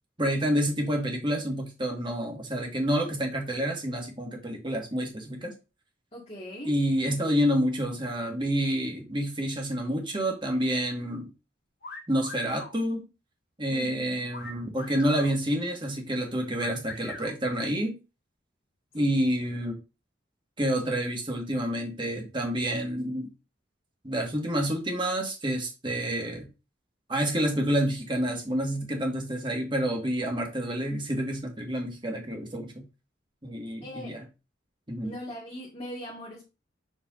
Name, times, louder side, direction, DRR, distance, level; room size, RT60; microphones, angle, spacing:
voice 1, 0.2-5.5 6.6-11.3 12.1-13.1 13.6-18.0 18.9-19.8 20.6-23.3 24.0-26.5 27.1-32.8 33.4-34.2 34.9-35.1, equal, 25° right, 1.7 m, -28 dB
voice 2, 6.1-6.7 13.7-14.3 18.9-19.0 33.8-34.1 35.0-36.5, left 1 dB, 30° left, 1.9 m, -40 dB
sound 1, 11.8-12.7 14.3-15.3 16.6-17.3, left 3 dB, 55° left, 1.4 m, -41 dB
7.5 x 4.8 x 2.6 m
head